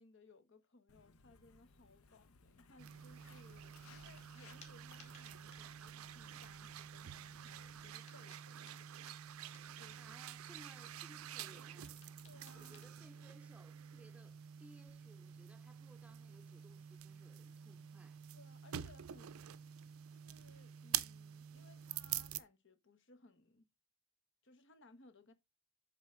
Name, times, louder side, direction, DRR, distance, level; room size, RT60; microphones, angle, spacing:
voice 1, 0.0-8.9 9.8-10.0 12.2-12.9 18.3-19.4 20.1-23.7 24.4-25.3, left 3 dB, 60° left, 1.1 m, -64 dB
Walk footsteps, 0.9-7.9, left 4 dB, 90° left, 0.8 m, -64 dB
sound 1, 2.8-22.4, right 11 dB, 80° right, 0.5 m, -47 dB
sound 2, 4.2-4.3 4.6-5.9 7.1-9.8 11.2-12.9, left 4 dB, 30° left, 2.0 m, -65 dB
voice 2, 10.0-12.0 12.5-18.2, right 1 dB, 5° right, 0.6 m, -62 dB
8.2 x 3.9 x 4.4 m
head